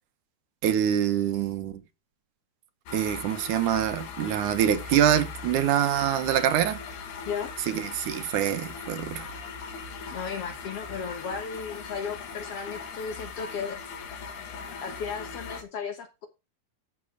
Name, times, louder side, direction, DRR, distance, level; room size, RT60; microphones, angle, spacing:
voice 1, 0.6-1.7 2.9-6.8 7.7-9.3, right 10 dB, 65° right, 2.1 m, -25 dB
sound 1, 2.9-15.6, left 5 dB, 60° left, 2.6 m, -39 dB
voice 2, 10.1-13.8 14.8-16.3, left 6 dB, 90° left, 1.3 m, -35 dB
13.5 x 6.5 x 3.8 m
omnidirectional pair, 4.7 m